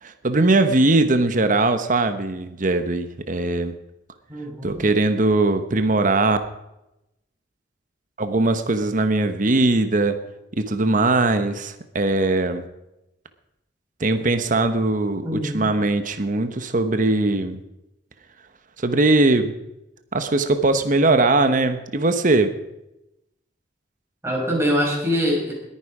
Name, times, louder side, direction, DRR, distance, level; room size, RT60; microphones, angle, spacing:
voice 1, 0.0-3.8 4.6-6.4 8.2-10.2 10.6-12.6 14.0-17.6 18.8-19.5 20.1-22.5, right 2 dB, 45° right, 9 dB, 1.1 m, -20 dB
voice 2, 4.3-4.8 15.2-15.7 24.2-25.5, equal, 15° right, -3 dB, 5.8 m, -23 dB
20.5 x 10.0 x 5.0 m, 0.90 s
head